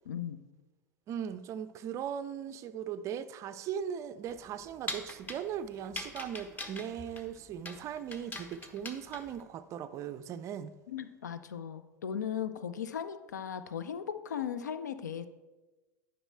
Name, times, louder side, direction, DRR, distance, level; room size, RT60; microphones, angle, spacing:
voice 1, 0.1-0.4 10.9-15.3, left 8 dB, 70° left, 0.6 m, -37 dB
voice 2, 1.1-10.8, right 9 dB, 30° right, 0.4 m, -39 dB
sound 1, 4.2-9.4, left 2 dB, 20° left, 1.1 m, -43 dB
11.0 x 5.4 x 4.3 m
figure-of-eight pair, 85°, 10 cm